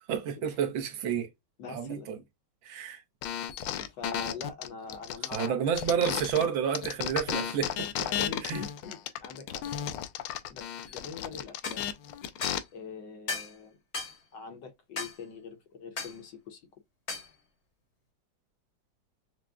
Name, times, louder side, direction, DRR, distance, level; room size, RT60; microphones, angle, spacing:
voice 1, 0.1-1.3 1.7-2.1 2.6-3.0 5.3-7.9 8.4-8.6, right 8 dB, 70° right, 1.5 m, -30 dB
voice 2, 1.6-2.2 3.8-5.6 8.0-9.7 10.5-11.9 12.7-13.8 14.3-16.6, left 4 dB, 65° left, 1.3 m, -43 dB
sound 1, 3.2-6.5 6.7-12.6, left 10 dB, 80° left, 1.4 m, -34 dB
sound 2, 11.6-11.8 12.4-12.6 13.3-13.5 13.9-14.2 15.0-15.2 16.0-16.2 17.1-17.3, left 4 dB, 40° left, 1.0 m, -35 dB
6.1 x 2.1 x 2.2 m
omnidirectional pair, 2.4 m